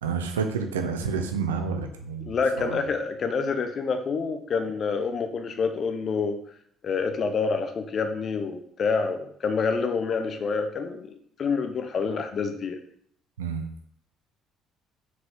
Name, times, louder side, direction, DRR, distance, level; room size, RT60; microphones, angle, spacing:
voice 1, 0.0-2.8 13.4-13.7, right 5 dB, 90° right, 6 dB, 0.7 m, -29 dB
voice 2, 2.3-6.4 6.8-11.1 11.4-12.8, left 5 dB, 50° left, 7 dB, 0.9 m, -27 dB
6.0 x 4.9 x 3.8 m, 0.64 s
hypercardioid pair, 55°, 0 cm